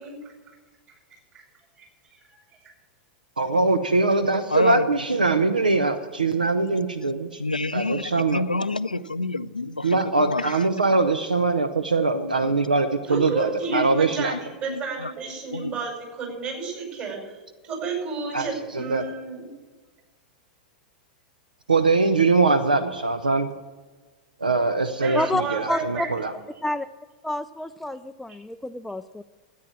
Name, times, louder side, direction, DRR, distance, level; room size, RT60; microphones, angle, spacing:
voice 1, 3.4-7.4 7.7-8.4 9.8-14.3 18.3-19.1 21.7-23.5 24.4-26.3, right 3 dB, 80° right, 0.7 m, -22 dB
voice 2, 4.5-4.9 7.4-10.7 12.1-12.5 13.7-13.8 14.7-15.1 15.5-15.8, left 2 dB, 90° left, 0.5 m, -28 dB
voice 3, 13.1-17.3 17.6-19.5 25.0-26.1, right 4 dB, 40° right, 5.3 m, -31 dB
voice 4, 25.7-26.1 26.6-26.9 27.2-29.2, left 1 dB, 5° left, 0.3 m, -28 dB
13.5 x 9.3 x 7.4 m
figure-of-eight pair, 95°, 4 cm